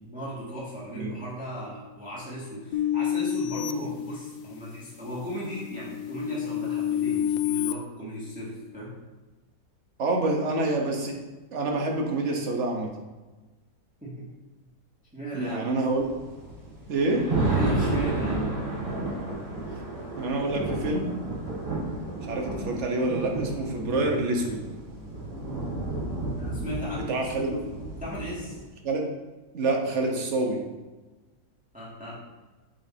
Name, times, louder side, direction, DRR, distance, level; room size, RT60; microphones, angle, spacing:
voice 1, 0.0-9.0 14.0-14.3 15.1-15.7 17.5-18.4 26.4-27.7 27.9-28.6 31.7-32.2, equal, 5° right, -7 dB, 2.1 m, -36 dB
sound 1, 2.7-4.7 5.2-7.7, left 10 dB, 75° left, 1.1 m, -29 dB
voice 2, 10.0-11.2 11.5-12.9 15.3-16.1 16.9-17.3 20.2-21.1 22.3-24.6 27.1-27.5 28.8-29.1 29.5-30.6, right 2 dB, 45° right, 1 dB, 1.4 m, -27 dB
sound 2, 15.9-28.6, right 2 dB, 75° right, 3.0 m, -31 dB
8.5 x 7.3 x 2.9 m, 1.2 s
omnidirectional pair, 1.9 m